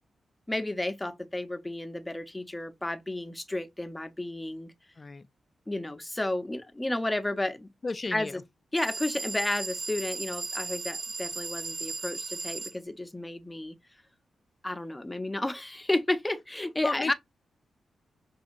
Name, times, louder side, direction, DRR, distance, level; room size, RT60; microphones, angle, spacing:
voice 1, 0.5-4.7 5.7-7.7 8.1-8.4 8.7-13.7 14.6-17.1, left 1 dB, 10° left, 0.7 m, -32 dB
voice 2, 5.0-5.3 7.8-8.4 16.8-17.1, left 3 dB, 30° left, 0.3 m, -33 dB
sound 1, 8.8-12.7, right 3 dB, 45° right, 1.4 m, -36 dB
5.9 x 2.7 x 2.5 m
wide cardioid pair, 110°, 0 cm